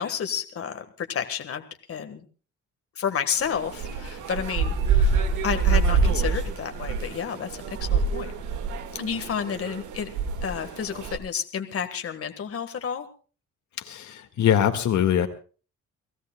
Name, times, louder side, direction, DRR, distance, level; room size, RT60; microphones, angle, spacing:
voice 1, 0.0-2.2 2.9-8.3 8.9-10.1 10.4-13.1, left 7 dB, 50° left, 7 dB, 1.6 m, -31 dB
sound 1, 3.4-11.2, right 4 dB, 80° right, 1.9 m, -26 dB
voice 2, 13.8-15.3, left 9 dB, 70° left, 6 dB, 1.9 m, -22 dB
29.5 x 16.5 x 2.3 m, 0.38 s
cardioid pair, 90°, 30 cm